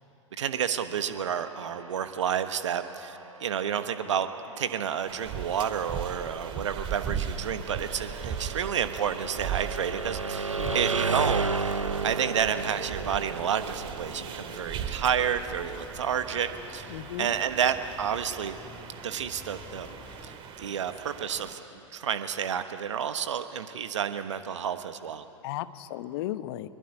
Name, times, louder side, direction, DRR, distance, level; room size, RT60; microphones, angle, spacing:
voice 1, 0.4-4.3 4.6-11.8 12.0-18.6 19.0-19.9 20.2-25.2, right 8 dB, 70° right, 9 dB, 1.3 m, -30 dB
sound 1, 1.0-16.8, right 4 dB, 90° right, 1.0 m, -35 dB
sound 2, 5.1-21.5, right 7 dB, 35° right, 2.6 m, -39 dB
sound 3, 12.6-20.4, left 2 dB, 10° left, 1.8 m, -49 dB
voice 2, 16.9-17.4 25.4-26.7, left 14 dB, 50° left, 13 dB, 1.1 m, -35 dB
23.5 x 22.0 x 9.7 m, 2.8 s
figure-of-eight pair, 95°, 16 cm